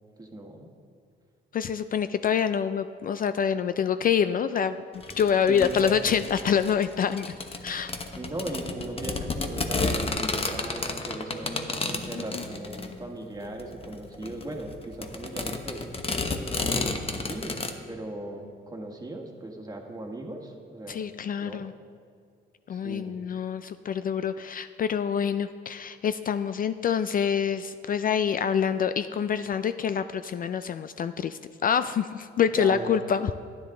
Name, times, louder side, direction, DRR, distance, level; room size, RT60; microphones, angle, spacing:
voice 1, 0.2-0.7 5.5-6.1 8.1-15.9 16.7-21.1 21.4-21.7 22.7-23.2 32.6-33.2, right 2 dB, 20° right, 2 dB, 1.7 m, -38 dB
voice 2, 1.5-4.8 5.2-7.4 7.6-7.9 12.3-12.4 20.9-21.7 22.7-33.3, left 7 dB, 45° left, 11 dB, 0.4 m, -26 dB
sound 1, 5.0-17.7, left 3 dB, 30° left, 1.0 m, -32 dB
12.5 x 10.0 x 3.8 m, 2.2 s
cardioid pair, 90°, 20 cm